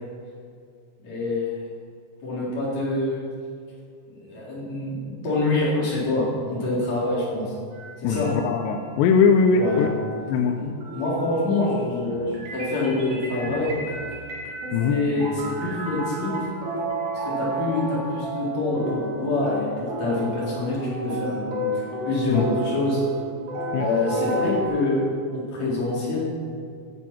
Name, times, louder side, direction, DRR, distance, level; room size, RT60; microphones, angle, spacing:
voice 1, 1.0-1.7 2.2-3.2 4.1-7.5 8.0-8.3 9.5-9.9 10.5-13.7 14.9-16.5 17.1-21.7 22.0-23.0 23.8-26.2, left 2 dB, 40° left, -7 dB, 4.7 m, -26 dB
sound 1, 7.7-9.0 9.6-24.7, right 1 dB, 60° right, 4.1 m, -32 dB
voice 2, 8.0-9.9 10.3-10.5 14.7-14.9 22.3-22.4 23.7-23.8, left 5 dB, 85° left, 5 dB, 2.6 m, -20 dB
15.0 x 9.6 x 6.0 m, 2.4 s
omnidirectional pair, 5.5 m